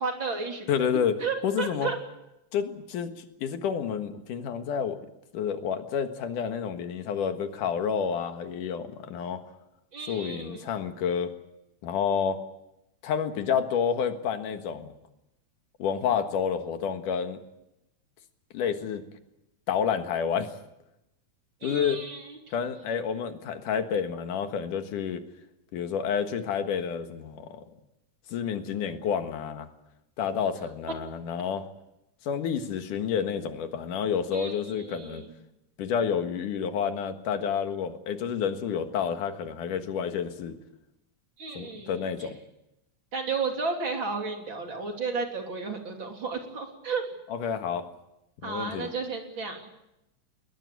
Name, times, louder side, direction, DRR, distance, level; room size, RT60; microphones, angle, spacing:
voice 1, 0.0-2.0 9.9-10.7 21.6-22.4 34.3-35.3 41.4-42.3 43.1-47.0 48.4-49.7, right 4 dB, 40° right, 3 dB, 3.6 m, -33 dB
voice 2, 0.7-1.2 1.4-1.9 2.5-5.0 5.3-9.4 10.1-11.3 11.8-12.4 13.0-14.9 15.8-17.4 18.5-19.0 19.7-20.5 21.6-22.0 22.5-25.2 25.7-27.6 28.3-29.7 30.2-31.7 32.2-35.2 35.8-40.6 41.5-42.4 47.3-47.9 48.4-48.9, left 7 dB, 85° left, 7 dB, 3.1 m, -29 dB
21.0 x 21.0 x 8.4 m, 0.88 s
omnidirectional pair, 3.6 m